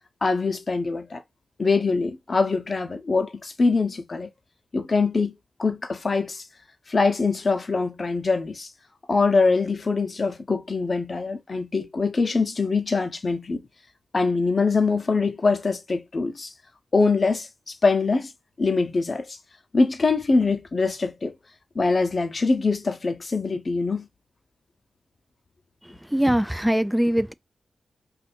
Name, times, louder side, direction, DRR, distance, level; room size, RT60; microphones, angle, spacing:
voice 1, 0.2-1.2 1.6-4.3 4.7-5.3 5.6-6.4 6.9-8.7 9.1-13.6 14.1-16.5 16.9-18.3 18.6-19.4 19.7-21.3 21.7-24.0, left 4 dB, 50° left, 0.7 m, -23 dB
voice 2, 26.1-27.3, equal, 5° right, 0.3 m, -21 dB
2.7 x 2.5 x 4.2 m
cardioid pair, 50°, 0 cm